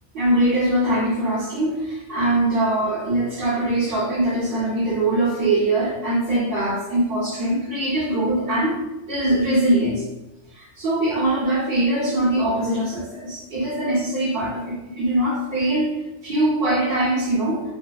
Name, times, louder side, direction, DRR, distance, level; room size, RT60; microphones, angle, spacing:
voice 1, 0.1-8.8 9.1-10.0 10.5-15.9 16.2-17.6, right 1 dB, 50° right, -6 dB, 0.8 m, -22 dB
2.8 x 2.0 x 2.3 m, 0.96 s
omnidirectional pair, 1.4 m